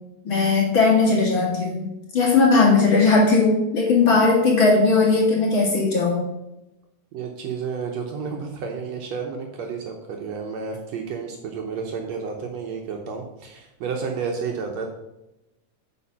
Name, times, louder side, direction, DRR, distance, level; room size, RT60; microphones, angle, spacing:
voice 1, 0.2-1.9 2.1-6.2, left 3 dB, 45° left, -4 dB, 2.4 m, -18 dB
voice 2, 7.1-14.9, right 5 dB, 70° right, 2 dB, 1.9 m, -31 dB
8.2 x 5.1 x 5.8 m, 0.92 s
omnidirectional pair, 3.6 m